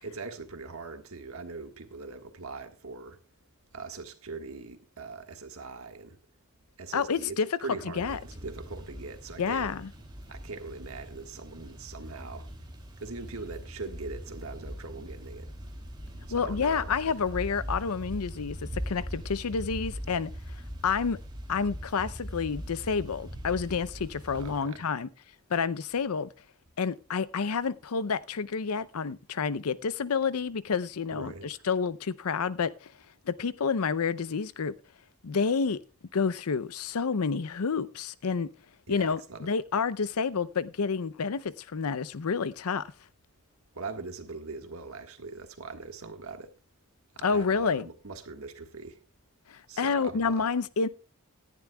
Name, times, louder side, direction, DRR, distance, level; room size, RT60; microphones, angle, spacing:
voice 1, 0.0-3.2 3.7-6.2 6.8-9.7 10.3-12.5 13.0-15.5 16.2-17.1 24.3-24.8 31.1-31.6 38.9-39.5 43.7-46.5 47.1-49.0 49.7-50.5, right 4 dB, 65° right, 1.5 m, -41 dB
voice 2, 6.9-7.5 8.0-8.2 9.4-9.9 16.3-20.3 20.8-21.2 21.5-25.1 25.5-26.3 26.8-32.9 33.3-34.7 35.2-35.8 36.1-38.5 38.9-42.9 47.2-47.9 49.5-50.9, left 5 dB, 75° left, 0.6 m, -29 dB
sound 1, 8.0-24.6, equal, 20° right, 2.5 m, -41 dB
18.0 x 10.5 x 2.3 m
head